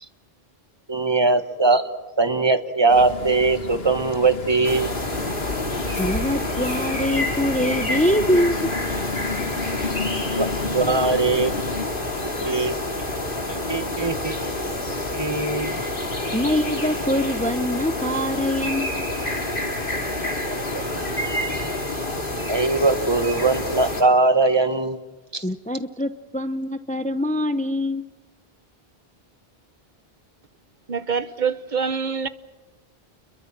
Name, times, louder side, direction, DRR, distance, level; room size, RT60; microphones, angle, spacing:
voice 1, 0.9-1.8 2.2-4.9 10.3-11.5 12.4-12.8 13.5-14.4 15.1-15.8 20.7-20.8 22.5-25.0 25.3-25.4, right 3 dB, 25° right, 1.4 m, -21 dB
sound 1, 2.9-11.9, left 4 dB, 75° left, 2.1 m, -32 dB
sound 2, 4.6-24.0, left 1 dB, 55° left, 3.1 m, -28 dB
voice 2, 6.0-8.7 16.3-19.0 25.4-28.0, left 1 dB, 10° left, 0.7 m, -24 dB
voice 3, 30.9-32.3, right 6 dB, 50° right, 1.1 m, -25 dB
29.5 x 22.5 x 7.4 m
omnidirectional pair, 1.0 m